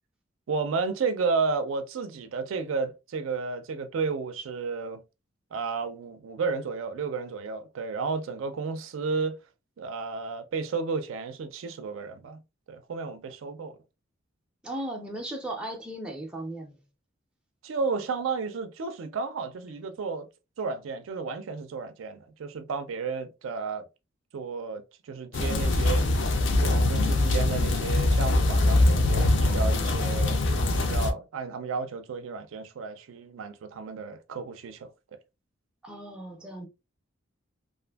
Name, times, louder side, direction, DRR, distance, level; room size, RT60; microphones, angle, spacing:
voice 1, 0.5-5.0 5.5-9.4 9.8-12.4 12.7-13.8 17.6-20.3 20.6-23.8 24.3-34.9, right 4 dB, 75° right, 0.4 m, -32 dB
voice 2, 14.6-16.8 29.4-29.9 35.8-36.7, right 1 dB, 5° right, 0.4 m, -37 dB
sound 1, 25.3-31.1, left 2 dB, 60° left, 0.4 m, -23 dB
2.5 x 2.5 x 2.2 m
head